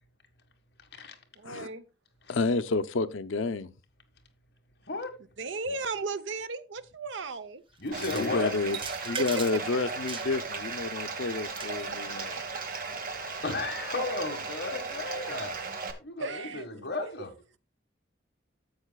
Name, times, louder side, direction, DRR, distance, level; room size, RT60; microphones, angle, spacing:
voice 1, 1.4-1.9 5.4-7.6 9.2-9.5 11.9-12.0 16.2-16.7, right 3 dB, 75° right, 0.7 m, -35 dB
voice 2, 2.3-3.7 7.9-8.8 9.1-12.3, left 3 dB, 90° left, 0.6 m, -30 dB
voice 3, 7.8-8.5 13.4-15.6 16.0-17.3, left 3 dB, 55° left, 1.6 m, -34 dB
sound 1, 7.9-8.3 8.7-9.7 10.1-10.6 11.2-11.9, right 5 dB, 25° right, 0.8 m, -40 dB
Bathtub (filling or washing), 7.9-15.9, right 4 dB, 45° right, 1.3 m, -36 dB
13.0 x 8.1 x 2.3 m
head